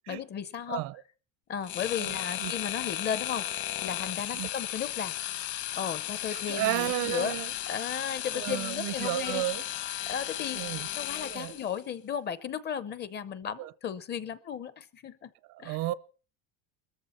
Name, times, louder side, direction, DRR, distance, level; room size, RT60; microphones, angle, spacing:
voice 1, 0.1-0.8 1.5-5.1 5.7-7.4 7.7-9.4 10.1-10.6 10.9-15.3 15.6-15.8, left 8 dB, 30° left, 0.8 m, -35 dB
sound 1, 1.6-11.8, left 13 dB, 55° left, 1.7 m, -35 dB
voice 2, 2.0-2.5 4.3-4.5 6.3-7.5 8.3-9.6 10.5-10.9 11.2-11.6 13.6-13.7 15.5-15.9, right 17 dB, 60° right, 0.7 m, -33 dB
21.0 x 14.0 x 4.3 m
cardioid pair, 175°, 35 cm